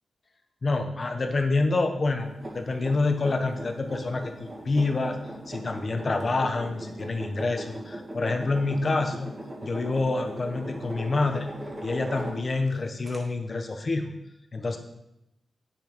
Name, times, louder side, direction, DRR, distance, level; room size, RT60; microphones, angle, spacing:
voice 1, 0.6-5.1 5.5-9.3 9.6-11.5 11.8-14.1 14.5-14.8, left 3 dB, 40° left, 6 dB, 1.2 m, -27 dB
sound 1, 2.2-12.7 13.1-13.2, right 1 dB, 30° right, 2.6 m, -39 dB
9.0 x 7.2 x 5.4 m, 0.87 s
wide cardioid pair, 115°, 0 cm